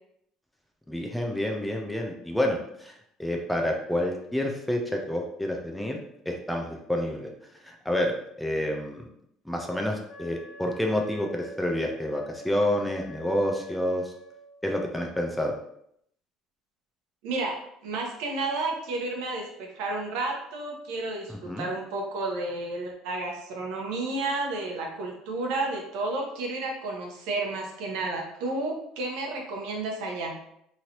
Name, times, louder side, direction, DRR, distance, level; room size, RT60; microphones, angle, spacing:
voice 1, 0.9-6.0 6.3-9.1 9.4-14.1 14.6-15.6 21.3-21.7, left 1 dB, 5° left, 1 dB, 0.3 m, -29 dB
Wind instrument woodwind instrument, 10.1-14.5, right 2 dB, 80° left, 1.0 m, -47 dB
voice 2, 17.2-17.6 17.8-30.4, right 2 dB, 80° right, 1 dB, 0.8 m, -31 dB
3.0 x 2.6 x 2.8 m, 0.73 s
cardioid pair, 175°, 0 cm